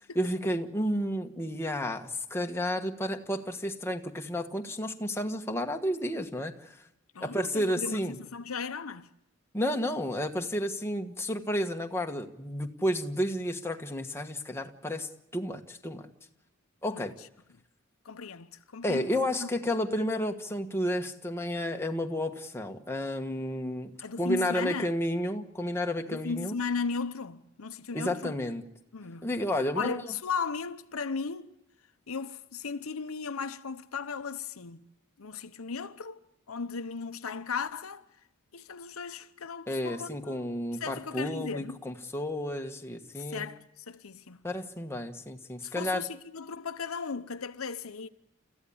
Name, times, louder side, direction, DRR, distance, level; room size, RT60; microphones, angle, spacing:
voice 1, 0.1-6.8 7.2-8.1 9.5-16.1 16.8-17.1 18.8-23.9 24.2-26.6 27.9-28.6 29.2-30.1 39.7-43.5 44.4-46.0, equal, 10° left, 1.3 m, -31 dB
voice 2, 7.1-9.1 16.9-17.3 18.0-19.1 19.4-19.5 24.0-24.9 26.1-28.4 28.9-29.3 29.8-31.5 32.1-34.8 35.2-36.2 36.5-38.1 38.5-40.5 40.8-41.8 43.2-44.4 45.6-48.1, left 5 dB, 90° left, 0.9 m, -36 dB
30.0 x 14.5 x 8.6 m
head